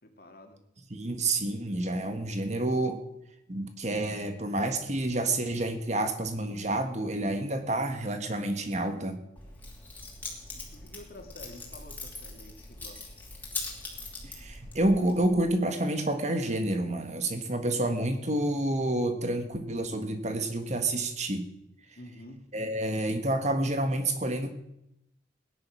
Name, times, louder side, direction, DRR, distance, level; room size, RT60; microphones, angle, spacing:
voice 1, 0.0-0.6 10.6-13.2 22.0-22.4, left 1 dB, 55° left, 4 dB, 2.3 m, -49 dB
voice 2, 0.9-3.0 3.5-9.2 14.2-21.5 22.5-24.5, right 1 dB, 40° right, 7 dB, 1.6 m, -29 dB
Keys jangling, 9.4-15.4, left 3 dB, 10° left, 3.2 m, -41 dB
17.5 x 10.5 x 6.3 m, 0.82 s
head